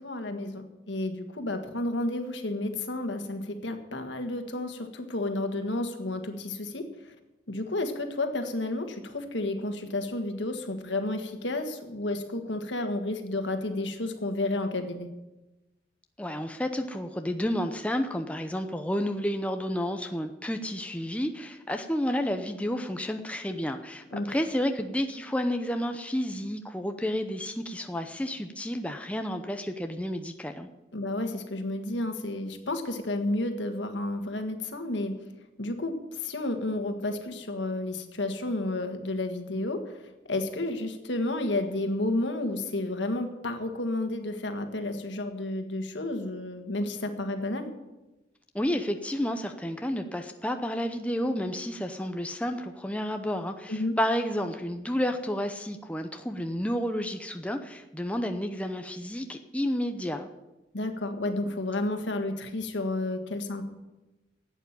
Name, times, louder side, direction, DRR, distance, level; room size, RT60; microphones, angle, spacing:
voice 1, 0.0-6.8 7.5-15.1 24.1-24.3 30.9-35.1 35.6-39.8 40.3-47.7 53.7-53.9 60.7-63.6, left 2 dB, 80° left, 6 dB, 1.7 m, -31 dB
voice 2, 16.2-30.7 48.5-60.3, equal, 5° left, 6 dB, 0.7 m, -31 dB
11.5 x 8.4 x 8.9 m, 1.0 s
head